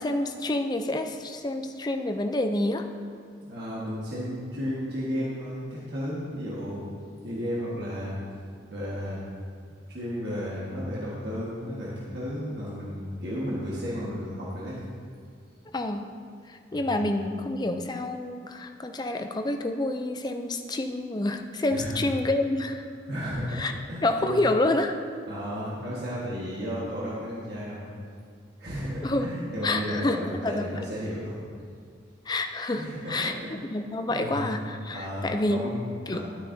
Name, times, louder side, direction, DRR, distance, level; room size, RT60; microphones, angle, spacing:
voice 1, 0.0-2.9 15.7-16.1 16.5-22.9 23.5-23.7 24.0-24.9 29.0-29.3 29.6-30.8 32.3-33.4 33.6-35.7 36.1-36.2, left 2 dB, 20° left, 6 dB, 0.5 m, -28 dB
voice 2, 3.5-6.8 7.2-8.2 8.7-9.3 9.9-14.8 16.7-17.0 21.7-21.9 23.1-23.6 23.9-24.4 25.3-27.9 28.6-31.4 32.7-33.5 34.1-34.5 34.9-36.2, equal, 60° right, -7 dB, 1.5 m, -33 dB
12.0 x 8.8 x 2.7 m, 2.2 s
head